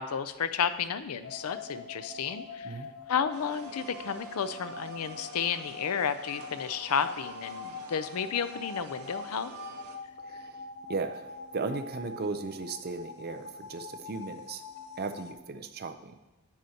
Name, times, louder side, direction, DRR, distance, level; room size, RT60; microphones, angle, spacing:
voice 1, 0.0-2.8 3.1-9.5, left 7 dB, 80° left, 12 dB, 0.5 m, -32 dB
sound 1, 1.2-15.3, left 4 dB, 50° left, 0.7 m, -44 dB
sound 2, 3.3-10.0, right 5 dB, 80° right, 1.0 m, -48 dB
voice 2, 10.2-10.6 10.9-14.6 15.0-16.2, right 3 dB, 45° right, 9 dB, 0.5 m, -36 dB
10.0 x 7.7 x 2.8 m, 1.2 s
head